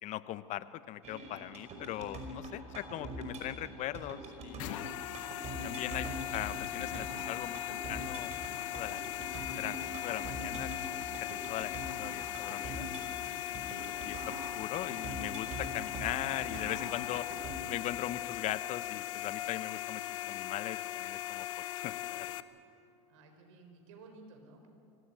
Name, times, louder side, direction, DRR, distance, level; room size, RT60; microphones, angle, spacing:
voice 1, 0.0-4.9 5.6-9.0 9.6-12.9 13.5-17.3 17.7-21.5 21.8-22.4, left 14 dB, 45° left, 15 dB, 0.9 m, -40 dB
sound 1, 1.0-17.6, right 1 dB, 40° right, 5.7 m, -43 dB
sound 2, 4.6-22.4, left 14 dB, 75° left, 0.9 m, -39 dB
voice 2, 23.1-24.7, right 3 dB, 70° right, 4 dB, 4.7 m, -54 dB
24.5 x 18.0 x 9.1 m, 2.8 s
hypercardioid pair, 105°, 17 cm